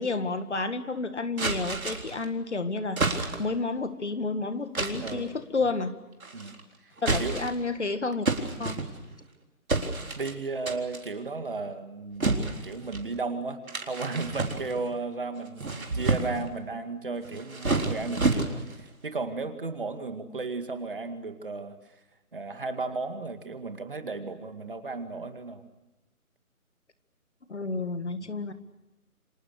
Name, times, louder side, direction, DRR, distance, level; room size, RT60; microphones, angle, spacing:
voice 1, 0.0-3.0 3.4-6.0 7.0-8.3 8.6-8.8 27.5-28.5, left 3 dB, 50° left, 10 dB, 1.9 m, -30 dB
sound 1, 1.4-2.2 3.0-3.6 4.7-5.2 6.2-6.6 7.0-7.7 8.2-9.2 9.7-10.3 10.7-11.1 12.2-13.1 13.7-14.9 15.4-16.5 17.2-18.8, right 3 dB, 65° right, 3.9 m, -29 dB
voice 2, 5.0-5.4 6.3-6.9 7.2-7.4 10.2-21.8 22.3-25.6 28.2-28.5, right 3 dB, 35° right, 8 dB, 2.2 m, -34 dB
29.5 x 26.0 x 6.5 m, 1.0 s
figure-of-eight pair, 170°, 44 cm